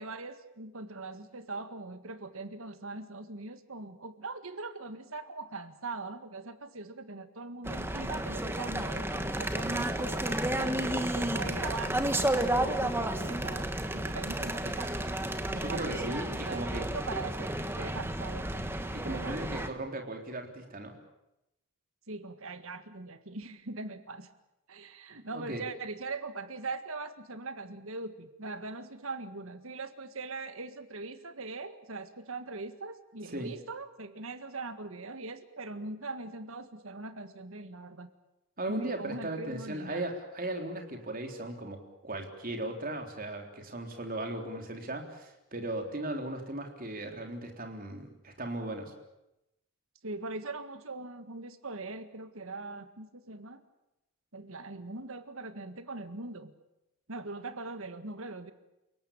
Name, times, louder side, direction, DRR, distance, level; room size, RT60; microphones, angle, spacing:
voice 1, 0.0-13.7 13.9-14.9 15.5-18.7 19.1-19.4 22.1-24.3 24.7-38.1 38.7-40.1 50.0-53.6 54.3-56.5 57.1-58.5, right 3 dB, 70° right, 10 dB, 1.8 m, -41 dB
sound 1, 7.6-19.7, right 1 dB, 10° right, 1.5 m, -32 dB
voice 2, 15.5-16.8 18.9-20.9 25.3-25.6 33.3-33.5 38.6-48.9, right 1 dB, 40° right, 3 dB, 3.7 m, -37 dB
29.0 x 18.0 x 8.8 m, 0.91 s
head